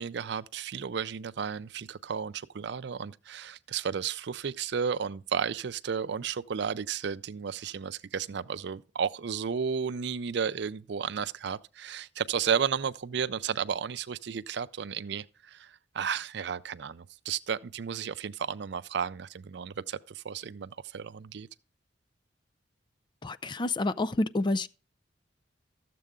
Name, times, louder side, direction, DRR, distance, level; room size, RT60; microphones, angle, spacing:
voice 1, 0.0-21.5, right 7 dB, 65° right, 0.5 m, -33 dB
voice 2, 23.2-24.7, left 2 dB, 25° left, 0.4 m, -28 dB
13.5 x 7.6 x 3.6 m
head